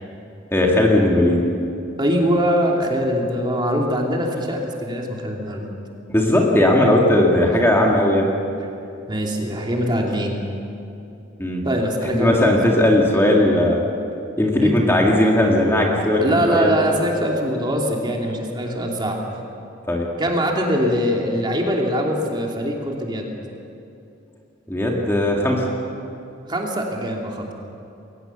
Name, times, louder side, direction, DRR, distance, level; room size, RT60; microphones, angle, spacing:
voice 1, 0.5-1.4 6.1-8.3 11.4-11.6 12.1-13.8 14.4-16.7 19.9-20.1 24.7-25.6, left 1 dB, 15° left, -1 dB, 2.1 m, -17 dB
voice 2, 2.0-5.7 9.1-10.4 11.6-12.5 14.6-14.7 16.2-19.2 20.2-23.3 26.5-27.5, equal, 25° right, 0 dB, 2.8 m, -22 dB
22.0 x 19.0 x 7.0 m, 2.7 s
head